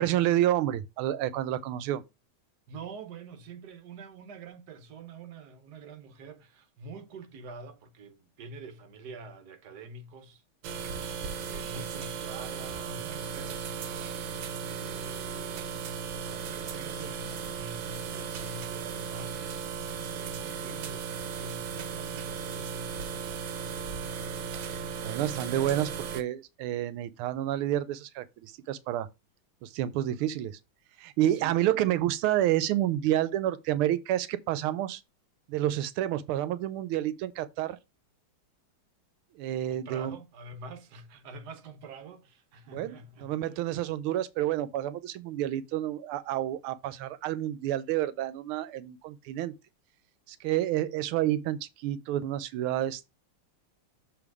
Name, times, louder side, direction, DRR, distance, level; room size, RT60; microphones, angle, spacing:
voice 1, 0.0-2.0 24.6-29.1 29.6-30.6 31.0-35.0 35.5-37.8 39.4-40.2 42.7-49.5 50.3-53.1, right 13 dB, 90° right, 1.5 m, -29 dB
voice 2, 2.7-10.4 11.0-15.8 16.3-23.8 31.3-31.7 39.6-43.6, right 4 dB, 55° right, 1.4 m, -47 dB
sound 1, 10.6-26.2, right 6 dB, 70° right, 1.5 m, -36 dB
7.1 x 3.5 x 4.7 m
omnidirectional pair, 2.3 m